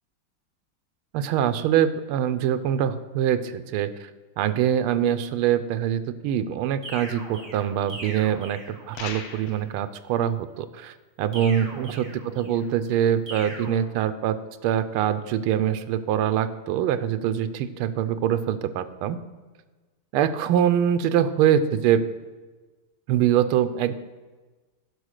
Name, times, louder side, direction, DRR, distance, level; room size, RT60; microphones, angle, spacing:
voice 1, 1.1-4.1 4.4-12.1 12.4-14.4 14.6-19.2 20.1-22.0 23.1-23.9, right 10 dB, 80° right, 12 dB, 1.5 m, -24 dB
sound 1, 6.8-9.2 11.3-12.7 13.3-13.7, right 1 dB, 60° right, 2.8 m, -40 dB
sound 2, 8.9-9.7, left 6 dB, 65° left, 1.6 m, -37 dB
11.5 x 5.4 x 6.4 m, 1.3 s
omnidirectional pair, 2.3 m